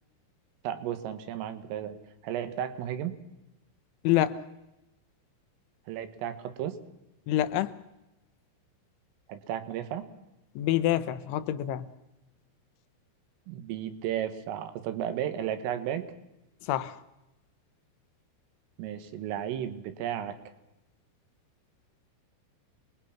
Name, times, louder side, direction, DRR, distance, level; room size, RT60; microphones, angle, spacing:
voice 1, 0.6-2.0 2.2-3.2 5.9-6.8 9.3-10.1 13.5-16.1 18.8-20.4, right 10 dB, 85° right, 4.1 m, -34 dB
voice 2, 4.0-4.4 7.3-7.7 10.6-11.9 16.6-17.0, left 13 dB, 75° left, 3.2 m, -27 dB
28.5 x 21.0 x 5.9 m
omnidirectional pair, 5.7 m